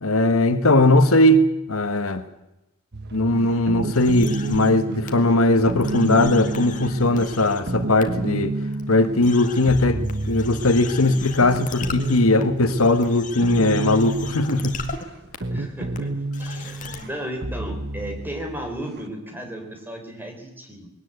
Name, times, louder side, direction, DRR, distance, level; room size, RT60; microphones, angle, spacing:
voice 1, 0.0-2.2 3.1-8.6 8.9-14.8, left 2 dB, 75° left, 9 dB, 1.4 m, -19 dB
sound 1, 2.9-19.1, right 2 dB, 50° right, 1.0 m, -30 dB
sound 2, 3.9-4.7 5.1-5.2 5.7-7.6 8.0-8.1 8.7-8.8 9.2-15.0 15.3-15.4 15.9-16.0 16.3-17.1, left 5 dB, 35° left, 2.0 m, -37 dB
voice 2, 15.5-20.9, right 1 dB, 10° right, 4 dB, 4.0 m, -34 dB
20.5 x 18.5 x 8.1 m, 0.92 s
head